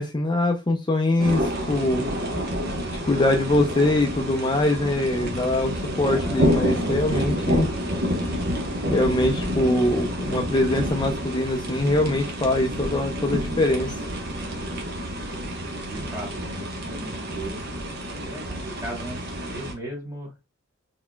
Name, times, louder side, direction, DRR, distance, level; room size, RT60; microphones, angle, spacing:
voice 1, 0.0-2.0 3.1-7.7 8.9-13.9, left 1 dB, 25° left, 0.5 m, -23 dB
sound 1, 1.2-19.7, equal, 55° right, 1.1 m, -28 dB
voice 2, 5.9-6.5 6.8-7.6 15.8-17.6 18.1-20.3, right 1 dB, 20° right, 2.5 m, -37 dB
4.0 x 4.0 x 2.2 m
head